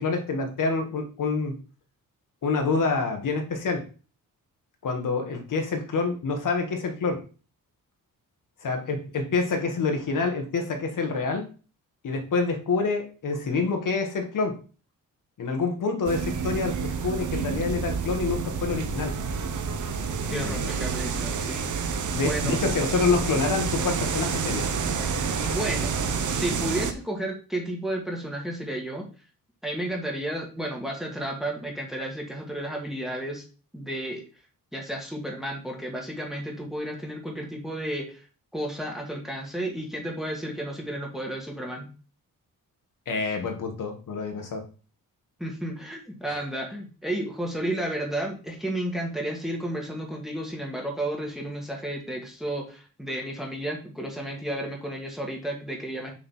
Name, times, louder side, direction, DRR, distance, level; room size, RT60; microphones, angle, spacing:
voice 1, 0.0-1.5 2.4-3.8 4.8-7.2 8.6-11.5 12.0-14.6 15.4-19.1 20.3-20.7 22.1-24.7 43.1-44.7 46.3-46.4, left 4 dB, 65° left, 4 dB, 1.7 m, -27 dB
sound 1, 16.1-26.9, right 5 dB, 60° right, 0.9 m, -29 dB
voice 2, 20.3-22.6 25.4-26.0 26.3-29.1 29.6-33.4 33.7-34.2 34.7-38.2 38.5-41.9 45.4-56.1, right 1 dB, ahead, 0 dB, 1.7 m, -32 dB
6.7 x 3.9 x 5.7 m, 0.35 s
wide cardioid pair, 155°, 34 cm